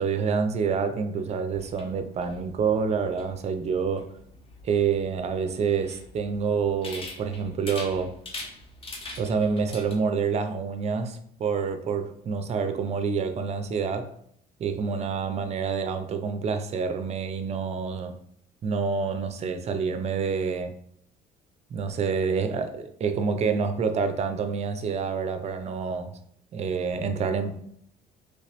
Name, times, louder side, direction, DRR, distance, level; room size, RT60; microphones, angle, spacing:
voice 1, 0.0-4.1 4.6-8.2 9.2-14.1 14.6-18.2 18.6-20.7 21.7-26.2 26.5-27.5, right 5 dB, 40° right, 0.4 m, -27 dB
sound 1, 1.5-9.9, left 2 dB, 35° left, 0.7 m, -43 dB
3.2 x 2.9 x 2.9 m
cardioid pair, 110°, 17 cm